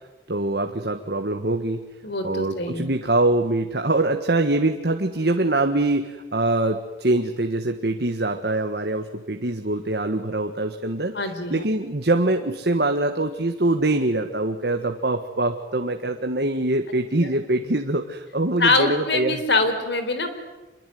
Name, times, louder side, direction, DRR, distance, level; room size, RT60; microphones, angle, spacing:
voice 1, 0.3-1.8 2.2-11.1 11.5-19.4, right 2 dB, 60° right, 5 dB, 1.6 m, -23 dB
voice 2, 2.0-2.9 11.1-11.6 18.6-20.3, left 3 dB, 70° left, 8 dB, 4.2 m, -23 dB
27.0 x 23.0 x 9.4 m, 1.1 s
head